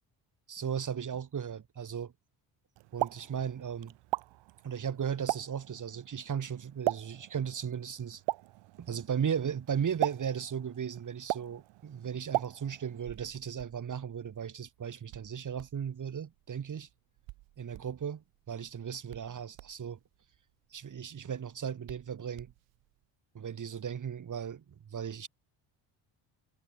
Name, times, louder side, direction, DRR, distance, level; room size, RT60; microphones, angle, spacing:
voice 1, 0.5-2.1 2.9-4.0 4.6-8.2 8.8-16.9 17.6-20.0 20.7-22.5 23.3-25.3, right 8 dB, 40° right, 2.0 m, -36 dB
Explosion, 2.8-13.0, right 20 dB, 70° right, 0.7 m, -38 dB
Hands, 13.0-23.0, right 21 dB, 85° right, 2.8 m, -57 dB
supercardioid pair, 75°, 46 cm